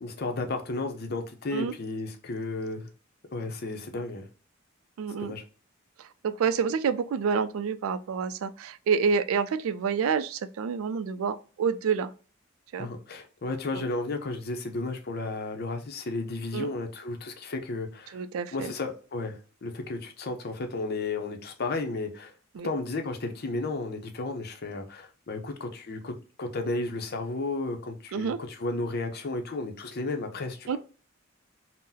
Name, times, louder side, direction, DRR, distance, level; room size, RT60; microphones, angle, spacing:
voice 1, 0.0-2.9 3.3-4.3 5.2-5.4 12.8-18.2 18.5-22.3 22.6-30.8, left 2 dB, 50° left, 0.6 m, -33 dB
voice 2, 5.0-5.3 6.0-12.1 12.7-12.9 16.5-16.7 18.1-18.7 22.5-22.7 28.1-28.4 30.7-30.8, right 6 dB, 80° right, 0.3 m, -28 dB
3.8 x 2.0 x 2.7 m
head